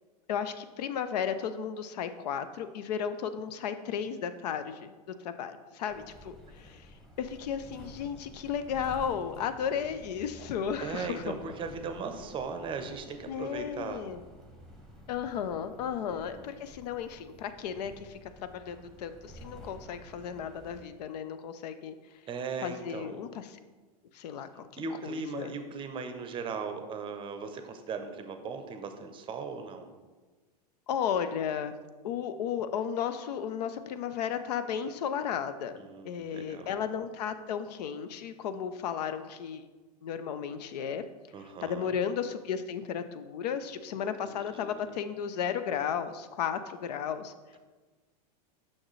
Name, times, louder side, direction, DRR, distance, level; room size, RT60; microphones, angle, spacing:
voice 1, 0.3-4.9 5.2-6.9 7.2-11.3 13.3-14.2 15.1-22.0 22.6-23.6 24.1-25.5 30.9-31.7 32.0-35.8 36.0-39.6 40.0-41.0 41.6-47.3, left 8 dB, 75° left, 11 dB, 0.5 m, -34 dB
sound 1, 5.9-20.8, equal, ahead, 1.0 m, -51 dB
voice 2, 10.8-14.0 16.3-16.5 22.3-23.2 24.8-29.9 35.8-36.7 41.3-41.9 43.9-44.8, right 5 dB, 25° right, 7 dB, 0.6 m, -38 dB
6.4 x 6.0 x 3.1 m, 1.3 s
hypercardioid pair, 120°, 21 cm